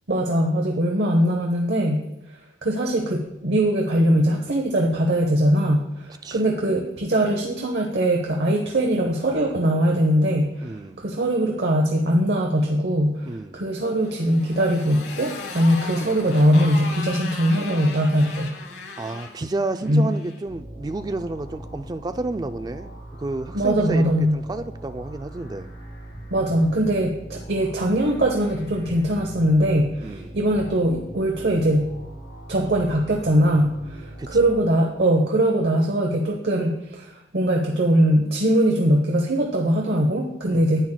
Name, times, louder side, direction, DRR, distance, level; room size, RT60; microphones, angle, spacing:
voice 1, 0.1-2.1 2.6-18.5 19.9-20.1 23.5-24.4 26.3-31.9 32.5-40.8, right 1 dB, 65° right, 1 dB, 0.9 m, -21 dB
voice 2, 10.6-11.0 13.2-13.7 19.0-22.9 23.2-25.7 30.0-30.3 34.2-34.4 40.5-40.8, right 2 dB, 20° right, 9 dB, 0.3 m, -31 dB
Motorcycle, 14.0-20.4, left 3 dB, 70° left, 1.1 m, -37 dB
sound 1, 20.5-34.6, right 1 dB, 85° left, 2.2 m, -40 dB
10.0 x 8.7 x 2.3 m, 0.91 s
head